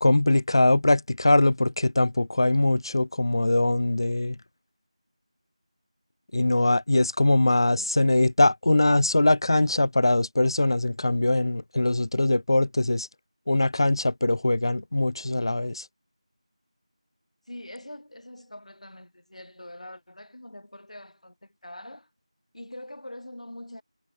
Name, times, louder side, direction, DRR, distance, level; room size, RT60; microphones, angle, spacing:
voice 1, 0.0-4.4 6.3-13.1 13.5-15.9, left 2 dB, 40° left, 0.3 m, -22 dB
voice 2, 7.6-8.0 17.5-22.1 22.5-23.8, left 1 dB, 75° left, 1.5 m, -43 dB
figure-of-eight pair, 170°, 4 cm